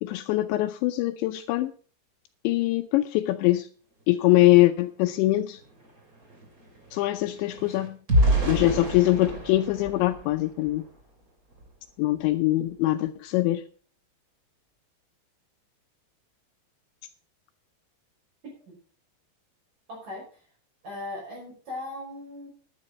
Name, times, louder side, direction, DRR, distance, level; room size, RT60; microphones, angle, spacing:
voice 1, 0.0-1.7 2.4-3.7 4.1-5.6 6.9-8.0 8.5-10.8 12.0-13.6, left 16 dB, 80° left, 8 dB, 2.9 m, -23 dB
sound 1, 5.1-5.2 5.5-11.0 11.5-11.7 12.1-12.3, right 1 dB, 25° right, 2.2 m, -29 dB
voice 2, 19.9-20.4 20.8-22.5, left 2 dB, 45° right, -4 dB, 6.9 m, -38 dB
12.0 x 9.9 x 5.3 m, 0.41 s
omnidirectional pair, 5.3 m